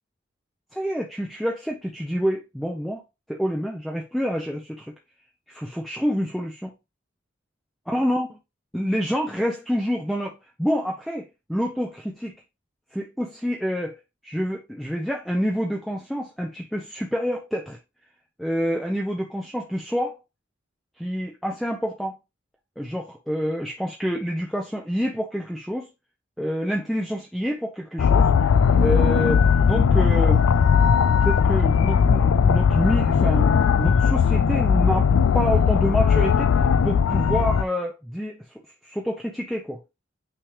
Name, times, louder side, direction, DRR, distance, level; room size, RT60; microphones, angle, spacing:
voice 1, 0.7-3.0 3.3-4.9 5.5-6.7 7.9-8.3 8.7-12.4 12.9-14.0 14.2-17.8 18.4-20.2 21.0-22.1 22.8-25.9 26.4-28.3 28.8-30.5 31.2-35.1 35.3-36.5 36.8-38.4 38.8-39.8, equal, ahead, 0.6 m, -27 dB
sound 1, 28.0-37.6, left 6 dB, 90° left, 0.4 m, -18 dB
8.9 x 3.4 x 3.2 m
head